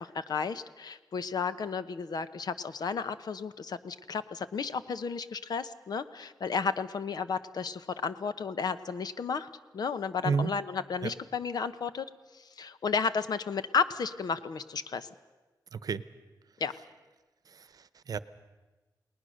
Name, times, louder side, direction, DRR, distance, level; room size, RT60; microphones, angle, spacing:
voice 1, 0.0-9.5 9.7-12.1 12.3-15.1 16.6-16.7, left 5 dB, 65° left, 12 dB, 1.0 m, -33 dB
voice 2, 15.7-16.0 17.5-18.2, right 5 dB, 60° right, 15 dB, 0.9 m, -31 dB
30.0 x 19.5 x 6.5 m, 1.2 s
wide cardioid pair, 145°, 7 cm